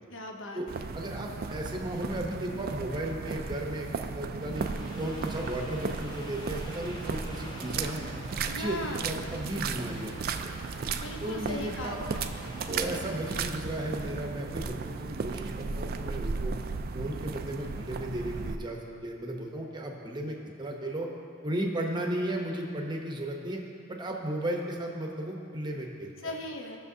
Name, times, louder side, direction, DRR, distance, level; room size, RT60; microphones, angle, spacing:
voice 1, 0.1-0.9 8.5-9.1 10.9-12.2 26.2-26.8, left 1 dB, 60° left, 2 dB, 0.8 m, -38 dB
sound 1, 0.7-18.6, right 4 dB, 45° right, 0.3 m, -35 dB
voice 2, 0.9-3.9 4.1-4.7 5.0-8.1 8.6-10.1 10.4-10.5 11.2-12.0 12.7-16.5 16.9-21.1 21.4-23.6 23.9-26.3, right 1 dB, 20° right, 0 dB, 0.8 m, -35 dB
sound 2, 4.3-13.7, equal, 20° left, 0.8 m, -47 dB
15.0 x 6.4 x 2.7 m, 2.5 s
head